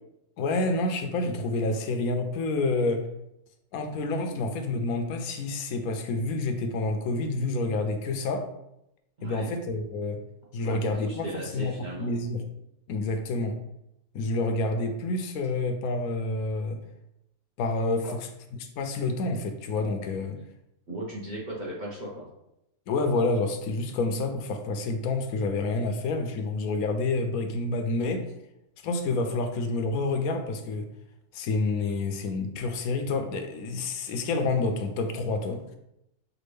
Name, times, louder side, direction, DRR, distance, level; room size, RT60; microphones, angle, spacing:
voice 1, 0.4-3.1 3.7-8.5 9.2-10.2 10.5-12.4 12.9-13.6 14.1-16.8 17.6-18.2 18.8-20.4 22.9-28.2 28.8-30.9 31.3-35.6, left 3 dB, 75° left, 6 dB, 1.0 m, -28 dB
voice 2, 9.2-9.5 10.6-12.1 18.0-18.1 20.9-22.3, right 1 dB, 40° right, -5 dB, 0.7 m, -37 dB
5.9 x 2.4 x 3.2 m, 0.84 s
omnidirectional pair, 1.6 m